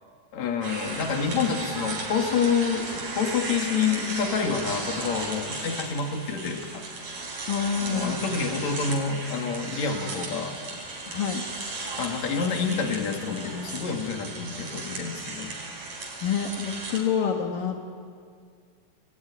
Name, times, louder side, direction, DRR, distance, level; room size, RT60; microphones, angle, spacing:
voice 1, 0.3-6.9 7.8-10.6 12.0-15.5, left 5 dB, 55° left, 3 dB, 3.5 m, -28 dB
sound 1, 0.6-17.0, right 3 dB, 55° right, 5.8 m, -36 dB
voice 2, 7.5-8.3 11.1-11.4 16.2-17.8, left 7 dB, 75° left, 3 dB, 3.1 m, -27 dB
28.0 x 20.5 x 9.8 m, 2.1 s
omnidirectional pair, 3.9 m